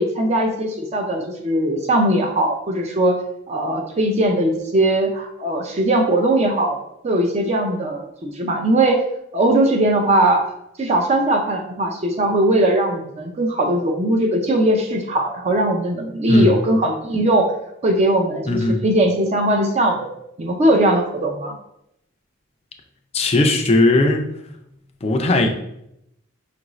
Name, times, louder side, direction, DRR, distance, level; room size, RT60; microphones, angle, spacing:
voice 1, 0.0-3.1 3.5-6.8 7.0-9.0 9.3-10.4 10.8-17.5 17.8-20.1 20.4-21.5, right 1 dB, 35° right, 2 dB, 0.5 m, -19 dB
voice 2, 18.5-18.8 23.1-24.2 25.0-25.5, left 2 dB, 30° left, 3 dB, 0.4 m, -17 dB
5.3 x 2.5 x 3.0 m, 0.80 s
head